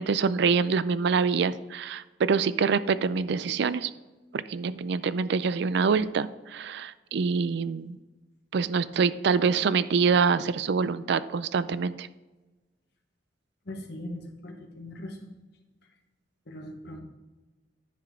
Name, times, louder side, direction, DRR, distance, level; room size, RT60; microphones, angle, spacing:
voice 1, 0.0-3.9 4.3-8.0 8.5-12.1, right 5 dB, 65° right, 15 dB, 0.4 m, -25 dB
voice 2, 13.6-15.3 16.5-17.0, left 1 dB, 65° left, 3 dB, 1.3 m, -40 dB
9.9 x 5.8 x 3.7 m, 1.2 s
head